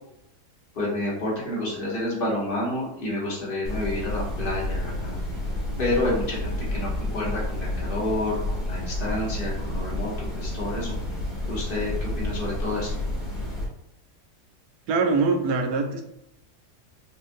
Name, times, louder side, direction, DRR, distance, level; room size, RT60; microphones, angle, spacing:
voice 1, 0.7-5.2 5.8-10.9 11.5-12.9, left 1 dB, 35° left, -4 dB, 1.1 m, -29 dB
sound 1, 3.6-13.7, left 1 dB, ahead, 1.2 m, -30 dB
voice 2, 14.9-16.0, right 4 dB, 80° right, 5 dB, 1.2 m, -23 dB
4.4 x 2.5 x 2.5 m, 0.82 s
omnidirectional pair, 1.7 m